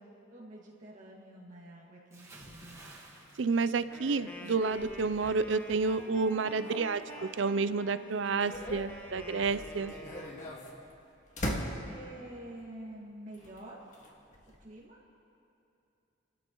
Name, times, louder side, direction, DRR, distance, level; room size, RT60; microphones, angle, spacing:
voice 1, 0.3-2.9 11.8-13.8 14.6-15.0, right 1 dB, 40° right, -4 dB, 2.0 m, -48 dB
Bathtub (filling or washing) / Splash splatter, 2.1-4.5 4.8-5.1, right 2 dB, 15° right, 1.6 m, -53 dB
sound 1, 2.4-7.7 8.1-12.3 13.3-14.8, equal, 40° left, 1.8 m, -43 dB
voice 2, 3.4-9.9, right 4 dB, 75° right, 13 dB, 0.5 m, -30 dB
Wind instrument woodwind instrument, 3.9-10.6, equal, 10° left, 1.3 m, -47 dB
29.0 x 13.0 x 3.1 m, 2.6 s
head